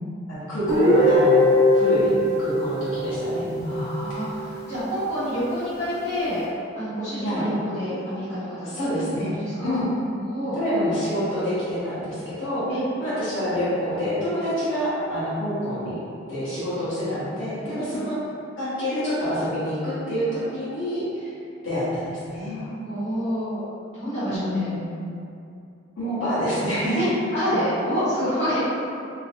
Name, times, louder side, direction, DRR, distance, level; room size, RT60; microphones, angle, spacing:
voice 1, 0.3-2.1 2.4-3.9 7.2-7.4 8.6-9.3 9.6-9.9 10.6-12.7 13.0-16.0 16.3-18.2 18.6-21.3 21.6-22.8 24.3-24.9 26.0-27.0, equal, 80° left, -12 dB, 1.2 m, -27 dB
Guitar, 0.7-4.5, left 1 dB, 55° left, 0.9 m, -21 dB
voice 2, 3.6-6.4 6.7-8.7 9.3-9.8 10.2-10.6 12.7-12.8 17.6-18.0 22.4-23.6 23.9-24.7 26.9-28.7, equal, 30° left, -14 dB, 1.1 m, -28 dB
2.9 x 2.3 x 2.9 m, 2.5 s
head